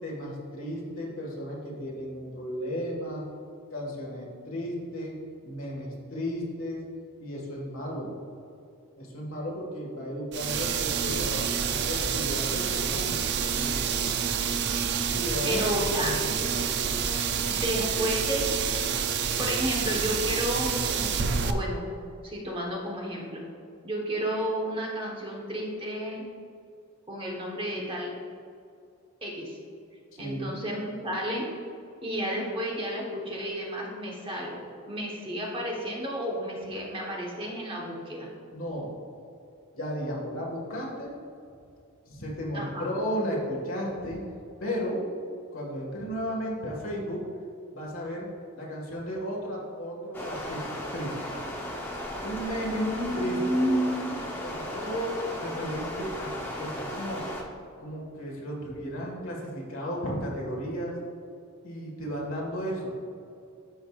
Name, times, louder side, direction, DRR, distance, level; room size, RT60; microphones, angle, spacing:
voice 1, 0.0-3.3 3.7-5.2 5.4-6.8 7.2-8.1 9.0-13.8 15.1-17.0 17.7-18.1 30.1-30.6 38.5-38.9 39.7-41.1 42.1-44.2 44.6-47.2 47.7-48.3 48.5-51.1 52.2-52.8 53.2-53.4 54.4-57.2 57.8-61.0 61.6-63.0, equal, 65° left, -2 dB, 1.7 m, -34 dB
sound 1, 10.3-21.5, right 7 dB, 50° right, 0.4 m, -28 dB
voice 2, 15.4-16.1 17.5-18.6 19.4-21.8 22.2-23.4 23.8-26.2 27.1-28.1 29.2-29.6 30.2-31.5 32.0-38.3 42.5-42.9 52.7-54.2, equal, 25° right, -2 dB, 1.1 m, -31 dB
Stream, 50.1-57.4, left 1 dB, 10° left, 0.8 m, -36 dB
13.0 x 4.8 x 2.4 m, 2.5 s
head